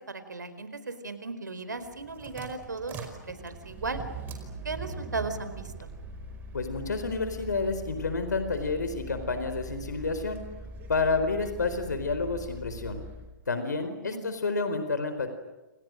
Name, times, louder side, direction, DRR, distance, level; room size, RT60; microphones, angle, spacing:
voice 1, 0.0-3.0 3.2-4.0 4.6-5.9 13.8-14.2, right 3 dB, 75° right, 11 dB, 4.6 m, -36 dB
sound 1, 1.8-13.3, right 2 dB, 20° right, 5.0 m, -42 dB
voice 2, 6.5-10.4 10.9-13.0 13.5-15.3, left 3 dB, 70° left, 9 dB, 4.4 m, -29 dB
29.0 x 28.5 x 6.5 m, 1.1 s
figure-of-eight pair, 130°, 10 cm